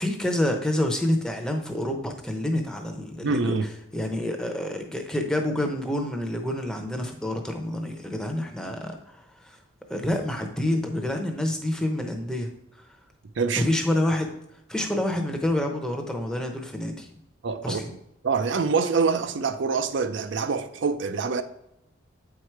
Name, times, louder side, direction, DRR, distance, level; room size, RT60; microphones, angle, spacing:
voice 1, 0.0-9.6 9.9-12.5 12.8-12.9 13.6-14.3 14.7-17.1 17.6-17.9, left 1 dB, 5° left, 0.7 m, -28 dB
voice 2, 3.2-3.7 13.4-13.6 17.4-17.8 18.2-21.4, right 5 dB, 65° right, 0.5 m, -25 dB
8.2 x 4.8 x 4.5 m
head